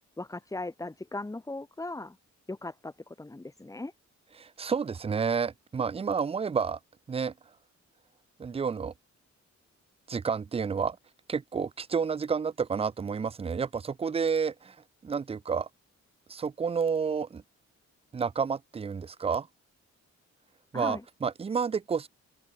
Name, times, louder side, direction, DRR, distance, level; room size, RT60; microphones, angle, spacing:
voice 1, 0.2-2.2 2.5-3.9 20.7-21.0, left 2 dB, 10° left, 1.4 m, -38 dB
voice 2, 4.4-6.8 7.1-7.3 8.4-8.9 10.1-11.0 11.3-14.8 15.0-15.7 16.3-17.4 18.1-19.5 20.7-22.1, right 6 dB, 20° right, 0.4 m, -30 dB
open air
wide cardioid pair, 165°, 29 cm